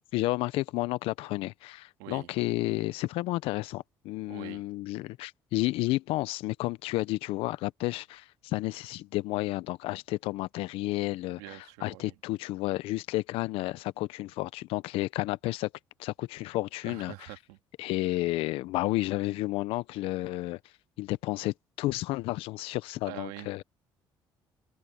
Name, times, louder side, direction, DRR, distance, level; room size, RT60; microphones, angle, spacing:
voice 1, 0.1-15.7 16.0-17.1 17.8-20.6 21.0-23.6, left 18 dB, 75° left, 0.8 m, -31 dB
voice 2, 4.3-4.6 11.4-12.1 16.8-17.6 23.1-23.6, right 20 dB, 85° right, 2.1 m, -44 dB
supercardioid pair, 65°, 10 cm